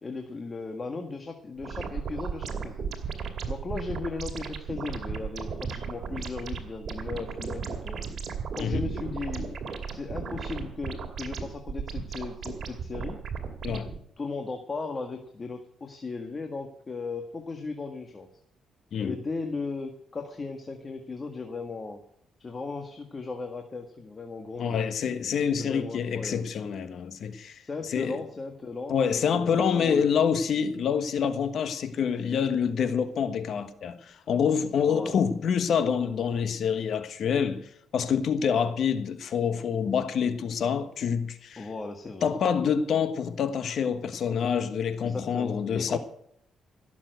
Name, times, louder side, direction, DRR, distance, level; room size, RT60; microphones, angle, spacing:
voice 1, 0.0-2.9 3.5-8.0 8.5-9.6 9.9-13.2 14.2-18.3 19.0-22.0 22.4-24.9 25.6-26.5 27.6-30.1 34.8-35.2 38.5-38.7 41.6-42.3 45.0-46.0, left 3 dB, 30° left, 1.8 m, -37 dB
sound 1, 1.6-14.0, right 6 dB, 55° right, 2.5 m, -35 dB
voice 2, 24.6-27.6 27.9-28.2 28.9-41.7 42.2-46.0, left 7 dB, 65° left, 1.3 m, -27 dB
16.5 x 7.3 x 8.0 m
cardioid pair, 90°, 0 cm